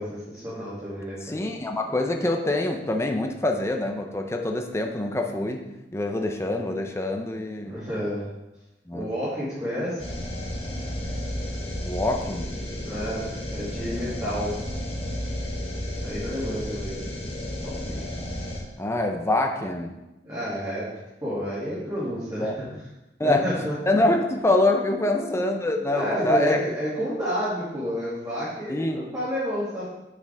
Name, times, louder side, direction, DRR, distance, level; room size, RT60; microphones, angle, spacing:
voice 1, 0.0-1.4 7.6-8.3 8.9-10.0 12.8-14.6 16.0-17.0 17.6-18.1 20.2-20.9 21.2-22.7 23.2-24.0 25.0-25.4 25.9-29.9, equal, 20° right, -12 dB, 2.5 m, -30 dB
voice 2, 1.2-5.6 5.9-7.8 8.9-9.1 11.8-12.5 18.8-20.0 22.4-22.6 23.2-23.5 23.9-26.6 28.7-29.0, left 2 dB, 15° left, 3 dB, 0.7 m, -25 dB
sound 1, 10.0-18.6, left 1 dB, 35° left, 1.4 m, -32 dB
8.4 x 5.7 x 3.5 m, 0.96 s
head